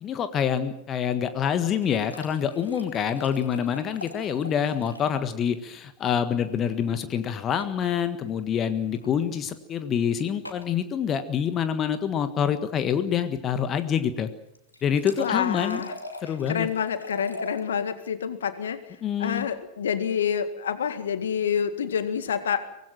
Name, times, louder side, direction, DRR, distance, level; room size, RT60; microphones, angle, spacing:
voice 1, 0.0-14.3 14.8-15.8 16.2-16.7 19.0-19.5, left 8 dB, 30° left, 10 dB, 1.5 m, -26 dB
sound 1, 1.5-5.2 5.5-5.6 5.8-5.9 7.6-8.0 8.9-9.1 10.5-10.7 14.5-17.6 19.1-19.5, left 1 dB, 80° left, 2.7 m, -42 dB
voice 2, 15.2-15.9 16.5-18.8 19.2-22.7, left 7 dB, 65° left, 11 dB, 1.9 m, -27 dB
24.0 x 19.5 x 7.5 m, 0.82 s
figure-of-eight pair, 90°, 0 cm